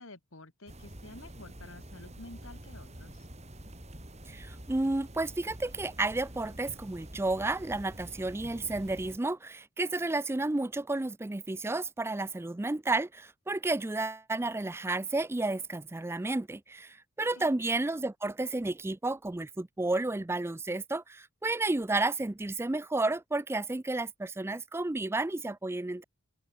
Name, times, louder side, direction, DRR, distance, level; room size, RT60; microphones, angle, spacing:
voice 1, 0.0-3.3 17.3-17.5, left 2 dB, 65° left, 3.4 m, -50 dB
sound 1, 0.7-9.2, right 1 dB, 30° right, 4.8 m, -47 dB
voice 2, 4.3-26.0, right 2 dB, 10° right, 0.4 m, -32 dB
head